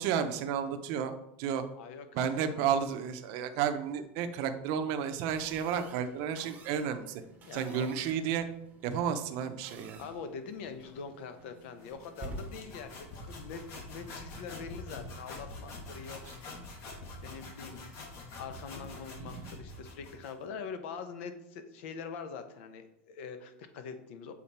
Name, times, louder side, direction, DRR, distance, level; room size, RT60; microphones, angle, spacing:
voice 1, 0.0-1.6 2.1-7.2 7.5-8.5 8.8-10.0 19.2-19.4, right 8 dB, 50° right, 7 dB, 0.7 m, -32 dB
voice 2, 1.8-2.6 7.4-7.9 10.0-16.6 17.0-17.8 18.4-24.3, left 6 dB, 65° left, 9 dB, 0.9 m, -44 dB
sound 1, 5.3-14.4, right 2 dB, 20° right, 0.9 m, -51 dB
sound 2, 11.8-20.4, left 2 dB, 45° left, 1.6 m, -45 dB
7.3 x 4.1 x 4.3 m, 0.79 s
supercardioid pair, 160°, 7 cm